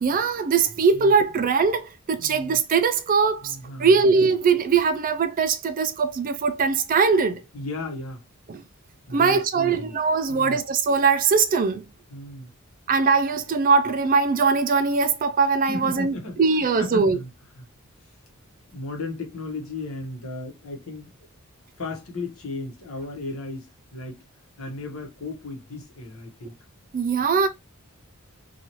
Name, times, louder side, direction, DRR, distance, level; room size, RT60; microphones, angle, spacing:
voice 1, 0.0-7.4 8.5-8.6 9.1-11.8 12.9-17.2 26.9-27.5, right 5 dB, 40° right, 0.4 m, -21 dB
voice 2, 2.2-2.6 3.4-4.0 7.5-8.2 9.1-10.0 10.3-10.6 12.1-12.5 15.7-17.3 17.6-17.7 18.7-21.1 21.7-24.2 24.6-26.5, left 2 dB, 75° left, 1.0 m, -35 dB
2.7 x 2.3 x 2.9 m
head